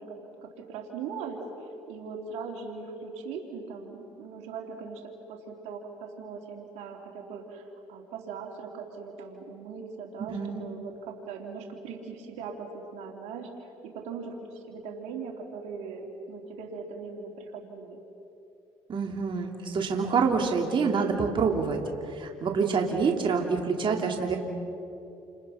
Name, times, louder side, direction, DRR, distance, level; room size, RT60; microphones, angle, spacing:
voice 1, 0.0-1.4 1.9-18.0, right 5 dB, 80° right, 1 dB, 3.3 m, -40 dB
voice 2, 10.3-10.6 18.9-21.8 22.1-24.4, right 5 dB, 45° right, 1 dB, 3.2 m, -26 dB
29.5 x 28.0 x 5.9 m, 2.8 s
supercardioid pair, 80°, 11 cm